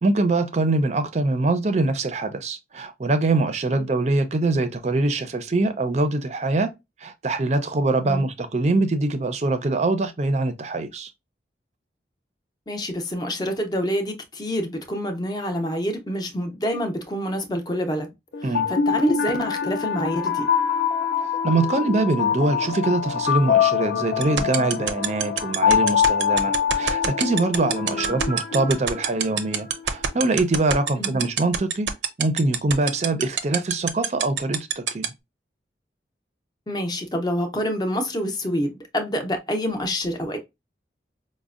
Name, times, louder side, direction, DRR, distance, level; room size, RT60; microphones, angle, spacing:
voice 1, 0.0-6.7 7.0-11.1 18.4-18.7 21.4-31.9 32.2-35.1, right 2 dB, 40° right, 0.5 m, -23 dB
voice 2, 12.7-18.1 18.4-20.5 27.9-28.2 31.0-31.3 36.7-40.4, equal, 25° left, 0.6 m, -27 dB
sound 1, 18.3-29.4, left 7 dB, 70° left, 0.4 m, -24 dB
sound 2, 24.2-35.1, right 9 dB, 85° right, 0.5 m, -23 dB
5.0 x 2.1 x 2.4 m
head